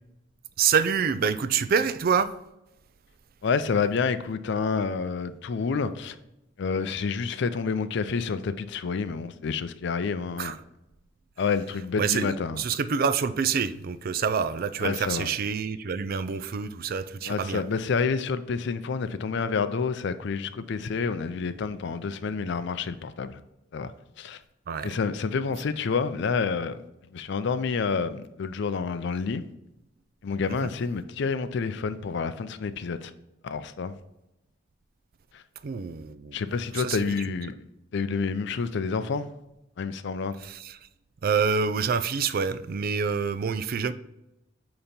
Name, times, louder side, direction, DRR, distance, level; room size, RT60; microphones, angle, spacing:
voice 1, 0.6-2.3 10.4-10.6 12.0-17.6 24.7-25.0 30.6-30.7 35.6-36.4 36.7-37.0 40.4-40.9 41.2-43.9, right 6 dB, 50° right, 0.4 m, -27 dB
voice 2, 3.4-6.2 6.6-10.5 11.4-12.6 14.8-15.3 17.3-23.4 23.7-23.9 24.2-24.4 24.8-26.8 27.1-29.4 30.2-33.1 33.4-34.0 35.3-35.4 36.3-37.6 37.9-39.3 39.8-40.3, left 5 dB, 65° left, 0.4 m, -28 dB
8.5 x 3.0 x 4.2 m
head